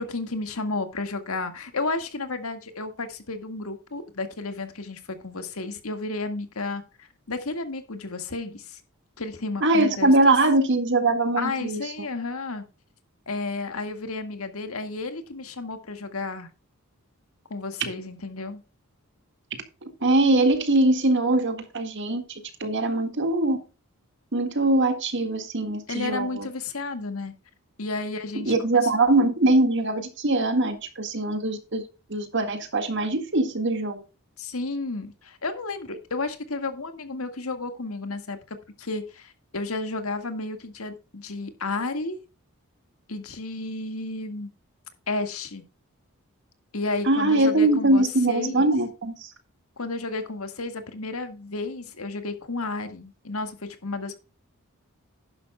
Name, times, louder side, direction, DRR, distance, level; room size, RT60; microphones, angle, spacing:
voice 1, 0.0-8.8 9.2-10.3 11.4-12.6 13.3-16.5 17.5-18.6 25.9-27.3 27.8-28.5 28.8-28.9 34.4-42.2 43.1-44.5 45.1-45.6 46.7-48.7 49.8-54.2, left 3 dB, 75° left, 1.8 m, -32 dB
voice 2, 9.6-11.8 19.5-22.2 22.6-23.6 24.3-26.5 28.3-31.8 32.1-34.0 47.1-49.3, right 2 dB, 55° right, 1.9 m, -22 dB
11.5 x 11.0 x 2.3 m
head